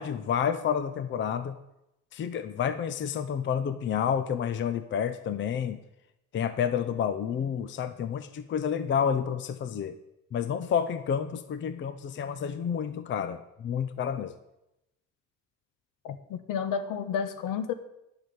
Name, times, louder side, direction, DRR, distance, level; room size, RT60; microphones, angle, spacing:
voice 1, 0.0-1.6 2.1-5.8 6.3-10.0 10.3-14.4, left 8 dB, 35° left, 12 dB, 0.6 m, -29 dB
voice 2, 16.0-17.7, left 7 dB, 75° left, 11 dB, 1.2 m, -31 dB
11.0 x 5.9 x 8.6 m, 0.87 s
cardioid pair, 165°, 32 cm